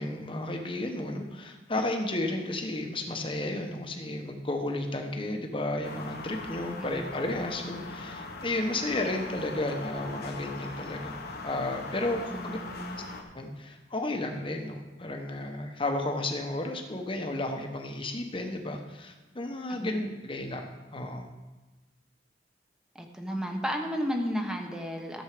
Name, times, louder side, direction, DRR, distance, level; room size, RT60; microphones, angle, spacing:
voice 1, 0.0-11.2 11.4-12.6 13.3-21.3, left 2 dB, 30° left, 4 dB, 1.2 m, -33 dB
sound 1, 5.8-13.2, left 3 dB, 55° left, 1.2 m, -40 dB
voice 2, 6.8-7.1 12.3-13.0 19.7-19.9 22.9-25.2, equal, 5° right, 3 dB, 1.1 m, -33 dB
13.0 x 7.3 x 5.0 m, 1.2 s
head